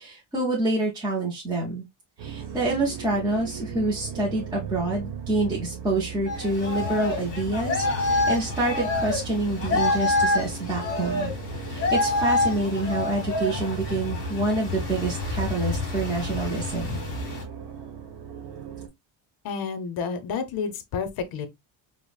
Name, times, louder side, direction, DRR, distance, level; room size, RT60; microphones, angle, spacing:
voice 1, 0.0-1.8 2.2-11.3 11.7-17.0, right 2 dB, 10° right, 0.4 m, -27 dB
sound 1, 2.2-18.9, right 8 dB, 55° right, 1.0 m, -38 dB
sound 2, 6.3-17.4, left 2 dB, 25° left, 1.4 m, -27 dB
voice 2, 19.4-21.5, left 5 dB, 50° left, 0.6 m, -30 dB
4.9 x 2.0 x 2.3 m
cardioid pair, 175°, 49 cm